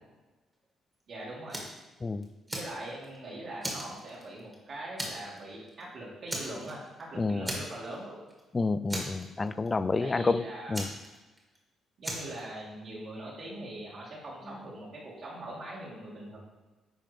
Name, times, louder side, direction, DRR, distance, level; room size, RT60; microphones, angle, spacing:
voice 1, 1.1-1.6 2.5-8.2 10.0-10.9 12.0-16.4, right 1 dB, 55° right, -6 dB, 2.2 m, -42 dB
Fire, 1.5-1.8 2.2-3.2 3.6-4.5 5.0-5.4 5.7-5.8 6.3-7.0 7.4-8.0 8.3-8.4 8.9-9.7 10.7-11.6 12.0-12.4, right 1 dB, 20° right, 1.8 m, -37 dB
voice 2, 7.2-7.6 8.5-10.9, left 3 dB, 25° left, 14 dB, 0.3 m, -29 dB
10.0 x 3.8 x 3.4 m, 1.2 s
cardioid pair, 90°, 0 cm